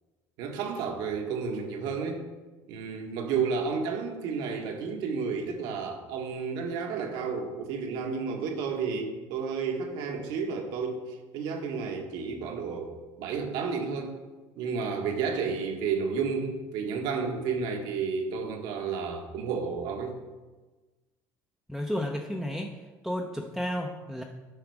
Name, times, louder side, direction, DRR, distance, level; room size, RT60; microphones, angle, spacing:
voice 1, 0.4-2.2 2.7-14.2 14.6-20.2, right 5 dB, 75° right, 3 dB, 1.5 m, -31 dB
voice 2, 21.7-24.2, left 1 dB, ahead, -1 dB, 0.7 m, -32 dB
9.9 x 5.9 x 4.8 m, 1.2 s
cardioid pair, 115°, 8 cm